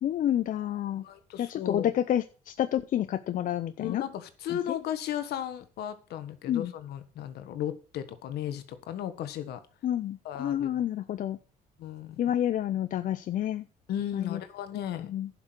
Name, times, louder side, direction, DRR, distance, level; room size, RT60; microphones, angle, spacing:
voice 1, 0.0-1.1 1.4-4.0 4.7-4.8 6.5-6.7 9.8-11.4 12.2-13.6 14.1-14.4 15.1-15.3, left 11 dB, 50° left, 12 dB, 0.6 m, -29 dB
voice 2, 0.9-1.9 3.8-9.6 10.2-10.8 11.8-12.2 13.9-15.1, left 10 dB, 75° left, 12 dB, 1.4 m, -35 dB
11.0 x 6.1 x 6.2 m, 0.36 s
cardioid pair, 110°, 17 cm